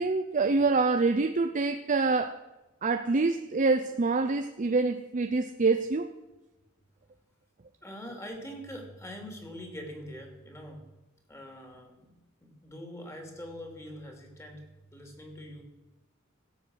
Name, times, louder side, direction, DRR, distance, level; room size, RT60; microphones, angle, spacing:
voice 1, 0.0-2.4 2.8-6.1, right 3 dB, 40° right, 0.6 m, -26 dB
voice 2, 7.8-11.0 11.3-12.1 12.4-15.6, equal, 15° left, 2.8 m, -43 dB
16.5 x 7.9 x 6.4 m
head